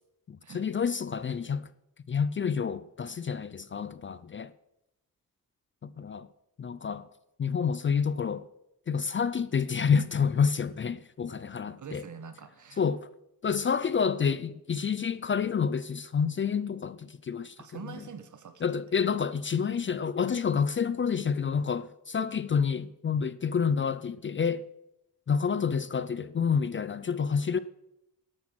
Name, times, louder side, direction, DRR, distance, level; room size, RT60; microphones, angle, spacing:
voice 1, 0.3-1.7 2.1-4.5 5.8-6.3 6.6-7.1 7.4-8.4 8.9-12.0 12.8-13.1 13.4-17.6 18.6-24.6 25.3-27.6, left 6 dB, 35° left, 0.4 m, -28 dB
voice 2, 11.8-12.9 17.6-19.0, right 6 dB, 55° right, 1.4 m, -45 dB
12.0 x 8.6 x 6.2 m
wide cardioid pair, 120°, 35 cm